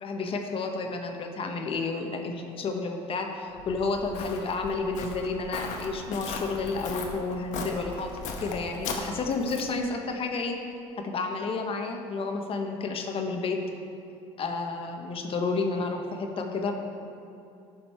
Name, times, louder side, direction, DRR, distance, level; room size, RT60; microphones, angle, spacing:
voice 1, 0.0-8.1 8.4-10.5 11.0-13.6 14.4-16.7, left 3 dB, 45° left, 3 dB, 1.1 m, -31 dB
Walk footsteps, 3.6-9.8, left 4 dB, 75° left, 1.0 m, -38 dB
11.5 x 5.3 x 4.4 m, 2.6 s
supercardioid pair, 90°, 13 cm